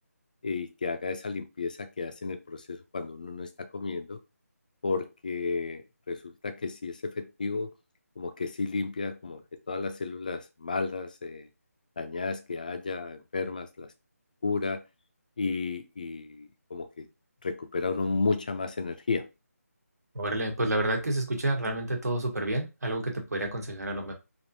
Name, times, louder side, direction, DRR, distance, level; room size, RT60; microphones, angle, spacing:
voice 1, 0.4-4.2 4.8-7.7 8.2-11.5 12.0-13.9 14.4-14.8 15.4-17.1 17.4-19.3, left 4 dB, 30° left, 0.4 m, -33 dB
voice 2, 20.1-24.1, right 1 dB, 75° right, 1.2 m, -29 dB
3.4 x 2.6 x 2.6 m
figure-of-eight pair, 170°, 9 cm